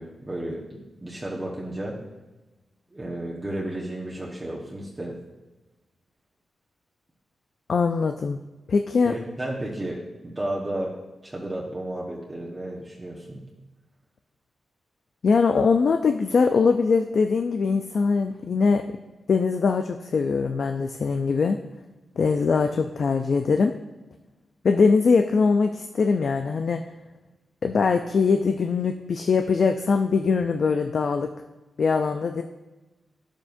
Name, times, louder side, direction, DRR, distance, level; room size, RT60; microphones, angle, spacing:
voice 1, 0.0-2.0 2.9-5.2 9.0-11.0 11.2-13.4, right 1 dB, 25° right, -4 dB, 1.2 m, -33 dB
voice 2, 7.7-8.4 8.7-9.1 15.2-18.8 19.3-21.6 22.2-23.7 24.6-26.8 27.6-31.3 31.8-32.4, left 5 dB, 65° left, 6 dB, 0.4 m, -22 dB
11.0 x 7.2 x 2.6 m, 1.1 s
cardioid pair, 90°, 0 cm